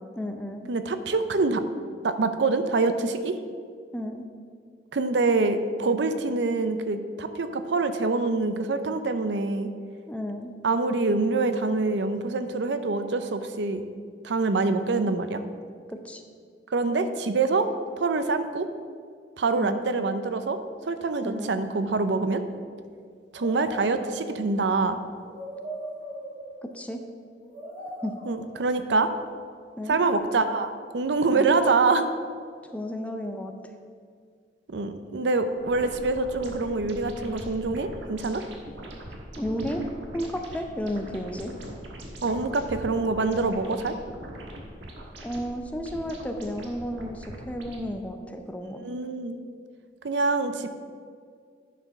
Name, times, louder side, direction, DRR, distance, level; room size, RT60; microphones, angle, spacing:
voice 1, 0.2-0.7 3.9-4.3 10.1-10.5 15.9-16.2 19.5-19.9 21.2-21.6 26.7-27.0 28.0-28.1 29.8-30.0 31.3-31.6 32.7-33.5 39.4-39.8 40.1-41.5 45.2-48.9, equal, 10° left, 5 dB, 0.6 m, -33 dB
voice 2, 0.7-1.6 2.0-3.4 4.9-9.7 10.6-13.9 14.2-15.4 16.7-17.7 18.0-18.7 19.4-20.6 20.8-22.4 23.3-25.0 28.3-29.1 29.9-32.1 34.7-38.4 42.2-44.0 48.8-49.4 50.0-50.7, right 3 dB, 70° right, 9 dB, 0.6 m, -25 dB
sound 1, 23.3-24.5 25.1-26.8 27.4-28.6 30.0-30.1, right 1 dB, 40° right, 2.3 m, -39 dB
sound 2, 35.6-48.0, right 1 dB, 90° right, 1.4 m, -42 dB
10.0 x 4.6 x 5.9 m, 2.1 s
head